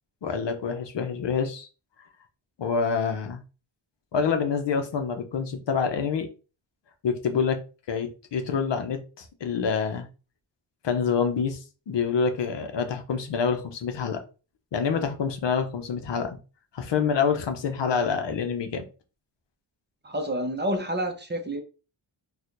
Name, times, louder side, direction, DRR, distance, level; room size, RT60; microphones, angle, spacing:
voice 1, 0.2-1.7 2.6-3.4 4.1-6.3 7.0-7.6 7.9-10.1 10.8-11.6 11.9-14.2 14.7-16.4 16.7-18.8, left 6 dB, 60° left, 6 dB, 0.8 m, -27 dB
voice 2, 20.0-21.6, right 1 dB, 20° right, 4 dB, 0.7 m, -29 dB
4.1 x 2.4 x 2.5 m, 0.33 s
cardioid pair, 70°, 49 cm